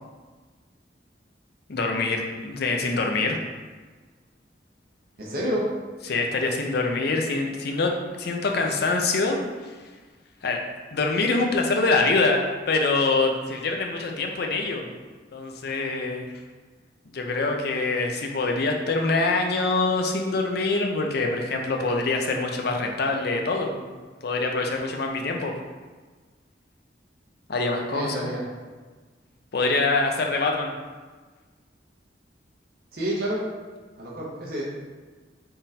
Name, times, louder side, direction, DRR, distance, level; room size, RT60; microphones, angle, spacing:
voice 1, 1.7-3.4 6.1-9.7 10.4-10.6 10.9-14.9 15.3-16.3 17.1-23.9 24.2-25.5 27.5-28.3 29.5-30.7, left 3 dB, 60° left, 2 dB, 0.5 m, -25 dB
voice 2, 5.2-5.6 27.9-28.4 32.9-33.4 34.0-34.6, equal, 55° right, -4 dB, 0.9 m, -29 dB
3.8 x 2.5 x 4.1 m, 1.4 s
head